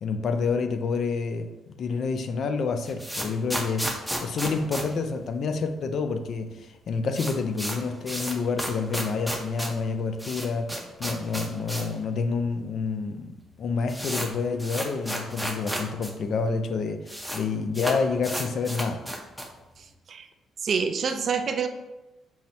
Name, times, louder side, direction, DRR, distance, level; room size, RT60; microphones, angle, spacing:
voice 1, 0.0-3.9 4.2-10.7 11.0-13.3 13.6-19.0, left 4 dB, 60° left, 7 dB, 0.3 m, -28 dB
sound 1, 2.6-5.8 6.1-6.2 6.4-6.5 6.8-12.0 12.3-12.4 13.1-13.2 13.4-16.1 16.4-16.5 16.7-17.4 17.7-19.6, equal, ahead, 0.6 m, -33 dB
voice 2, 19.8-20.3 20.6-21.7, right 6 dB, 55° right, 7 dB, 0.3 m, -27 dB
5.5 x 2.0 x 2.7 m, 1.1 s
cardioid pair, 90°, 0 cm